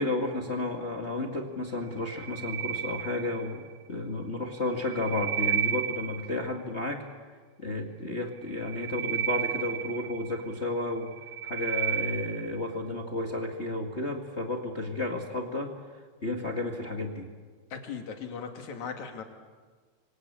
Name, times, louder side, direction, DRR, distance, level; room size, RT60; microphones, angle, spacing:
voice 1, 0.0-7.0 7.6-11.1 11.4-15.7 16.2-17.3, left 2 dB, 25° left, 2 dB, 1.6 m, -32 dB
sound 1, 2.0-3.7 4.6-6.5 8.4-10.5 11.0-12.6, right 9 dB, 75° right, 2.7 m, -32 dB
voice 2, 17.7-19.2, left 6 dB, 75° left, 4 dB, 3.9 m, -38 dB
27.0 x 24.0 x 8.6 m, 1.5 s
omnidirectional pair, 3.3 m